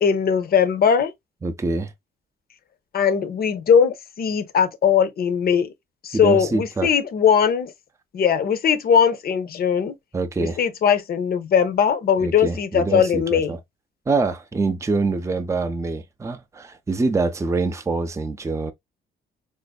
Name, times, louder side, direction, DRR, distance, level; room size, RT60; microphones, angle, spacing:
voice 1, 0.0-1.1 2.9-5.7 6.0-7.7 8.1-9.9 10.4-13.6, left 7 dB, 50° left, 0.6 m, -19 dB
voice 2, 1.4-1.9 6.1-6.9 10.1-10.6 12.2-13.6 14.1-18.7, right 3 dB, 15° right, 0.5 m, -25 dB
4.2 x 2.5 x 2.2 m
cardioid pair, 90°, 20 cm